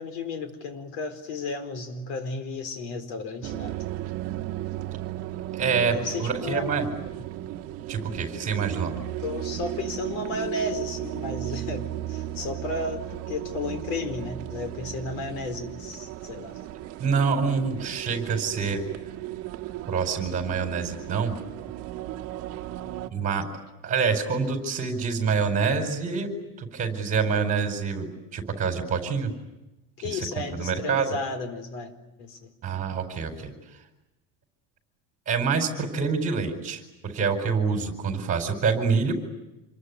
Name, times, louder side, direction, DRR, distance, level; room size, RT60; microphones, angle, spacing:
voice 1, 0.0-3.8 5.9-6.8 9.2-16.6 30.0-31.9 32.2-32.5, left 3 dB, 70° left, 9 dB, 4.5 m, -33 dB
sound 1, 3.4-23.1, right 14 dB, 40° right, 1.4 m, -35 dB
voice 2, 5.5-6.9 7.9-8.9 17.0-18.8 19.9-21.4 23.1-23.5 23.8-26.3 26.6-29.3 30.0-31.2 32.6-33.5 35.3-39.2, right 5 dB, 20° right, 6 dB, 4.6 m, -26 dB
27.5 x 22.5 x 9.7 m, 0.96 s
cardioid pair, 175°, 37 cm